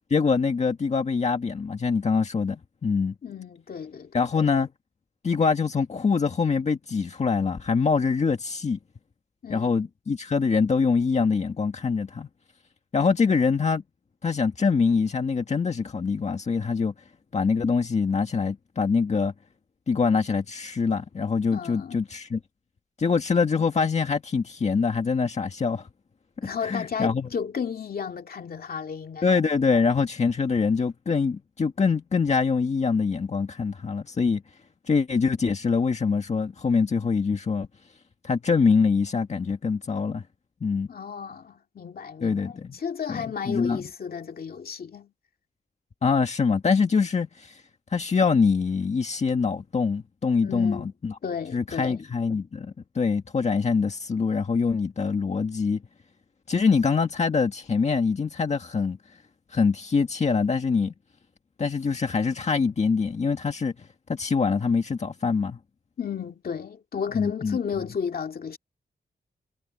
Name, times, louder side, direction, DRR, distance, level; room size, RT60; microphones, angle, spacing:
voice 1, 0.1-3.1 4.1-4.7 5.2-8.8 9.5-12.3 12.9-13.8 14.2-16.9 17.3-19.3 19.9-22.4 23.0-25.9 26.6-27.3 29.2-34.4 34.9-37.7 38.2-40.2 40.6-40.9 42.2-42.7 43.1-43.8 46.0-47.6 47.9-51.1 51.5-55.8 56.5-59.0 59.5-60.9 61.6-63.7 64.1-65.6 67.1-67.6, left 5 dB, 40° left, 1.7 m, -24 dB
voice 2, 3.2-4.2 9.4-9.9 21.5-22.0 26.4-29.3 40.9-45.1 50.4-50.9 51.2-52.0 66.0-68.6, left 6 dB, 55° left, 2.2 m, -33 dB
wide cardioid pair, 165°, 18 cm